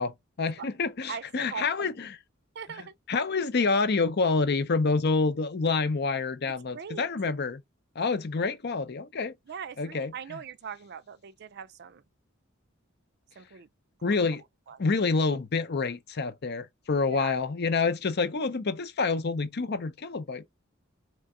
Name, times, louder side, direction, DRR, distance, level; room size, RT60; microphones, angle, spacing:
voice 1, 0.0-2.1 2.8-7.6 8.0-9.3 9.8-10.4 14.0-14.4 14.8-20.4, left 4 dB, 55° left, 0.6 m, -28 dB
voice 2, 1.1-2.0 2.5-2.9 6.7-7.1 9.5-12.0 13.4-13.7 14.1-14.2 14.7-14.8 17.1-17.3, right 6 dB, 55° right, 0.5 m, -40 dB
3.8 x 3.3 x 3.7 m
head